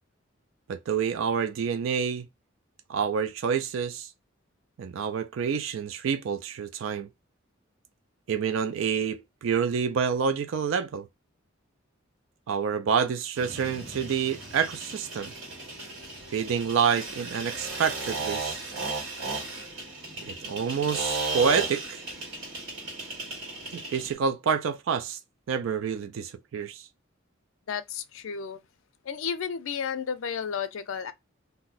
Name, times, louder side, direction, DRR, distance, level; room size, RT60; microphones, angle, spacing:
voice 1, 0.7-2.3 2.9-4.1 4.8-7.1 8.3-11.1 12.5-15.3 16.3-18.6 20.2-22.0 23.7-25.2 25.5-26.9, right 6 dB, 70° right, 0.3 m, -28 dB
sound 1, 13.3-24.1, right 3 dB, 90° right, 1.5 m, -35 dB
voice 2, 27.7-28.6 29.0-31.1, left 7 dB, 80° left, 0.4 m, -32 dB
2.6 x 2.1 x 3.8 m
head